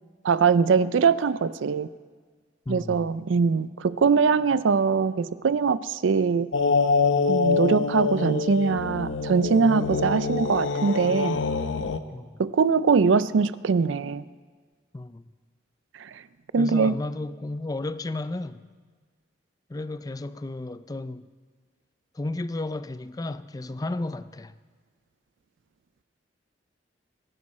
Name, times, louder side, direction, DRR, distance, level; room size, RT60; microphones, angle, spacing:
voice 1, 0.2-1.9 2.7-6.5 7.3-11.4 12.4-14.2 16.0-16.2 16.5-16.9, right 5 dB, 90° right, 0.4 m, -22 dB
voice 2, 2.7-3.0 12.1-12.4 14.9-15.3 16.6-18.6 19.7-21.3 22.1-24.5, left 2 dB, 20° left, 0.4 m, -33 dB
sound 1, 6.5-12.0, left 4 dB, 90° left, 0.7 m, -25 dB
22.5 x 11.0 x 4.3 m
head